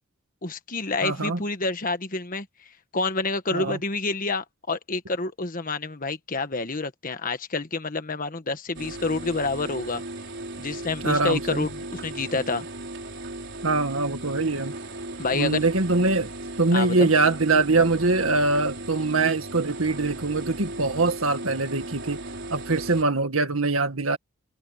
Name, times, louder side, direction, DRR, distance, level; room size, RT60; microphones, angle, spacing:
voice 1, 0.4-10.0 10.6-12.7 15.2-15.6 16.7-17.1, left 3 dB, 40° left, 1.4 m, -28 dB
voice 2, 1.0-1.4 3.5-3.8 11.0-11.7 13.6-14.7 15.3-16.3 16.6-22.2 22.5-24.2, right 3 dB, 80° right, 1.9 m, -23 dB
sound 1, 8.7-23.0, right 2 dB, 60° right, 4.8 m, -37 dB
head